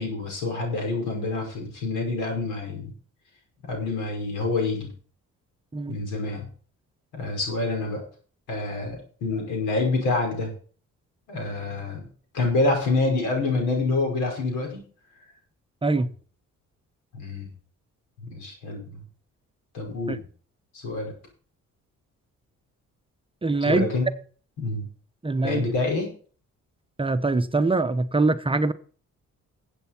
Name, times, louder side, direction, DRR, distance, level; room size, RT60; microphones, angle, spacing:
voice 1, 0.0-2.9 3.7-4.9 5.9-6.5 7.1-8.0 8.5-10.5 11.3-12.1 12.3-14.8 17.1-17.5 18.2-19.0 19.7-20.2 20.7-21.1 23.6-24.1 24.6-24.9 25.4-26.1, left 3 dB, 90° left, 2 dB, 5.8 m, -27 dB
voice 2, 23.4-23.9 25.2-25.6 27.0-28.7, right 3 dB, 20° right, 10 dB, 0.8 m, -23 dB
14.5 x 8.2 x 4.4 m, 0.42 s
cardioid pair, 90°, 30 cm